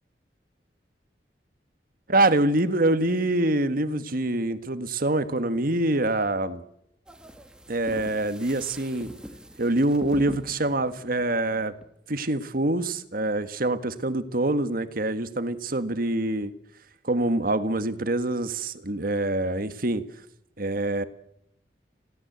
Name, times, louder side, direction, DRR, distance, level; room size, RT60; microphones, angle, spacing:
voice 1, 2.1-6.6 7.7-9.1 9.6-11.7 12.1-16.5 17.0-20.0 20.6-21.0, right 2 dB, 55° right, 11 dB, 1.7 m, -25 dB
sound 1, 7.1-11.9, equal, 5° right, 2.0 m, -42 dB
27.5 x 17.5 x 8.2 m, 0.78 s
head